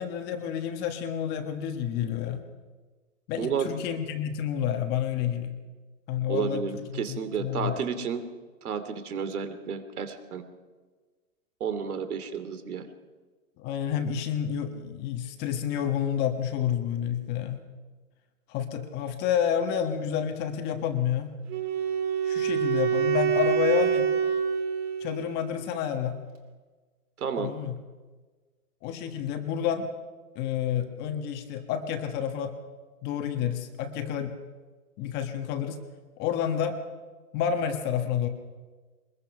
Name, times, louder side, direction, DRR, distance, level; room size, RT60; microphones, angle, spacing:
voice 1, 0.0-2.4 3.3-5.6 6.1-7.8 13.6-17.6 18.5-21.4 22.2-24.1 25.0-26.2 27.4-27.7 28.8-29.9 30.3-32.5 33.0-34.3 35.0-35.8 36.2-36.8 37.3-38.3, left 9 dB, 20° left, 7 dB, 1.3 m, -29 dB
voice 2, 3.4-3.7 6.3-8.2 8.6-10.4 11.6-12.9 27.2-27.5, right 7 dB, 70° right, 10 dB, 2.7 m, -31 dB
Wind instrument woodwind instrument, 21.5-25.6, right 7 dB, 30° right, 2.3 m, -26 dB
22.5 x 21.0 x 5.9 m, 1.4 s
hypercardioid pair, 150°, 45 cm